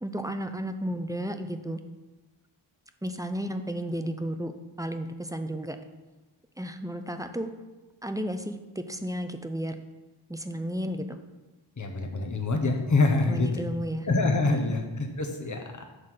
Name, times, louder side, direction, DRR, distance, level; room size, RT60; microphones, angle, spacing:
voice 1, 0.0-1.8 3.0-4.5 4.8-5.8 6.6-7.5 8.0-9.8 10.3-11.2 13.3-14.1 14.5-14.8, equal, 5° right, 7 dB, 0.5 m, -33 dB
voice 2, 11.8-13.5 14.1-15.8, left 3 dB, 40° left, 3 dB, 1.0 m, -25 dB
6.6 x 3.8 x 6.2 m, 1.1 s
wide cardioid pair, 55°, 48 cm